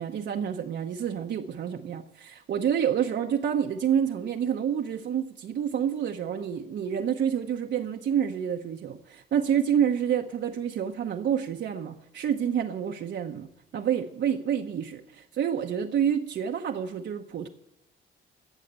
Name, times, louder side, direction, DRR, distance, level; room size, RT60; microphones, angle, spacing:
voice 1, 0.0-17.5, right 8 dB, 65° right, 2 dB, 0.9 m, -28 dB
16.0 x 6.4 x 8.1 m, 0.82 s
cardioid pair, 90°, 20 cm